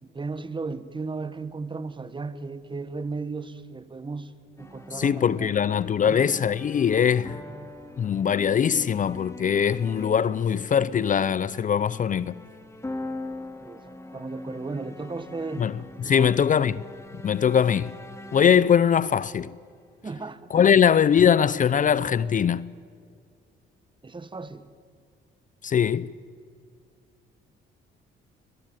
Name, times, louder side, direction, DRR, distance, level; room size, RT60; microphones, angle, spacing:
voice 1, 0.0-4.3 4.6-5.5 6.0-6.3 13.6-15.7 16.0-16.5 20.0-20.8 24.0-24.6, right 3 dB, 25° right, 1.4 m, -35 dB
sound 1, 4.6-19.9, left 2 dB, 15° left, 2.3 m, -42 dB
voice 2, 4.9-7.4 8.0-12.4 15.6-16.8 17.2-17.9 18.3-19.5 20.5-22.7 25.6-26.1, left 8 dB, 40° left, 0.5 m, -21 dB
22.5 x 21.0 x 9.2 m
cardioid pair, 90°, 20 cm